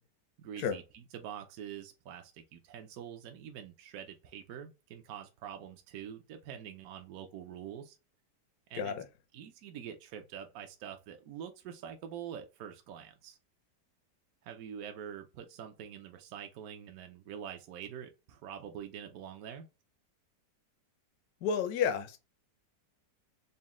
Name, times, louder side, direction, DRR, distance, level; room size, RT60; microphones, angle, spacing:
voice 1, 0.4-8.0 8.7-8.9 9.3-13.4 14.4-19.7, right 9 dB, 70° right, 0.9 m, -45 dB
voice 2, 21.4-22.2, left 7 dB, 70° left, 1.0 m, -31 dB
4.1 x 2.1 x 3.5 m
omnidirectional pair, 1.8 m